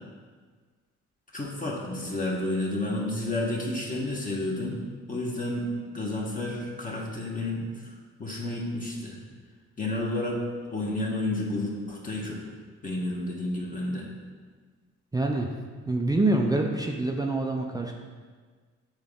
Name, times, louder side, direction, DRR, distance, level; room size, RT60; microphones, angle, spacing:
voice 1, 1.3-4.8 5.1-5.6 5.9-7.9 8.2-9.2 9.8-10.4 10.7-12.4 12.8-14.1, left 2 dB, 25° left, -3 dB, 1.2 m, -31 dB
voice 2, 15.1-15.5 15.9-17.9, right 2 dB, 15° right, 1 dB, 0.5 m, -26 dB
7.5 x 4.0 x 3.7 m, 1.5 s
cardioid pair, 90°, 30 cm